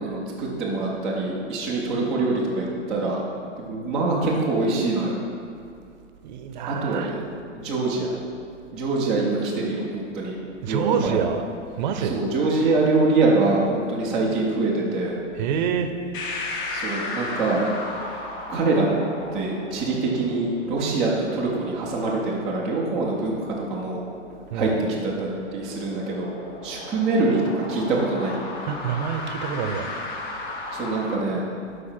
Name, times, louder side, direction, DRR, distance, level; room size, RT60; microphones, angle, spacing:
voice 1, 0.0-3.2 3.6-5.2 6.7-7.2 7.5-8.2 8.7-10.3 10.7-11.1 12.0-15.2 16.7-17.6 18.5-18.9 19.3-24.0 24.5-24.7 25.0-26.3 26.6-28.4 30.7-31.4, right 3 dB, ahead, -10 dB, 0.3 m, -24 dB
voice 2, 6.2-7.2 10.6-11.4 11.8-12.2 15.3-15.9 24.5-24.8 28.7-29.9, right 7 dB, 40° right, 7 dB, 0.7 m, -27 dB
sound 1, 16.1-31.2, left 2 dB, 40° left, 1.5 m, -36 dB
12.0 x 4.7 x 4.4 m, 2.4 s
hypercardioid pair, 140°, 37 cm